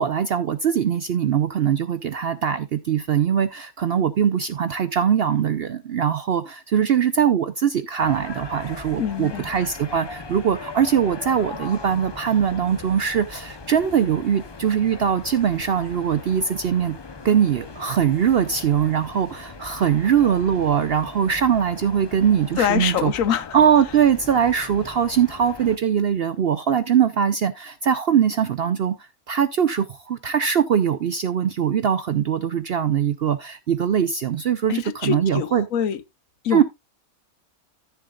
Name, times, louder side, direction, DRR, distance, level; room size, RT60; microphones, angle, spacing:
voice 1, 0.0-17.0 17.2-23.1 23.5-35.7 36.5-36.6, right 8 dB, 60° right, 0.6 m, -21 dB
sound 1, 8.0-25.8, left 4 dB, 40° left, 0.3 m, -39 dB
voice 2, 9.0-9.5 22.6-23.5 34.7-36.0 36.4-36.6, left 9 dB, 70° left, 1.1 m, -24 dB
13.5 x 6.9 x 2.3 m
omnidirectional pair, 1.5 m